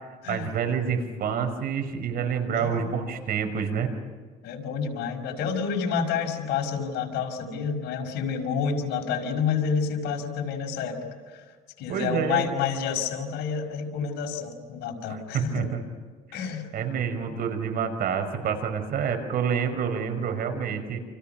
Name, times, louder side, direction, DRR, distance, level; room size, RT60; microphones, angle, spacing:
voice 1, 0.3-3.9 11.9-12.4 15.1-15.8 16.4-21.0, right 7 dB, 60° right, 6 dB, 5.4 m, -28 dB
voice 2, 2.5-2.9 4.4-11.4 11.8-15.7 16.3-16.7, left 6 dB, 85° left, 3 dB, 5.7 m, -29 dB
29.0 x 29.0 x 5.9 m, 1.5 s
cardioid pair, 110°, 17 cm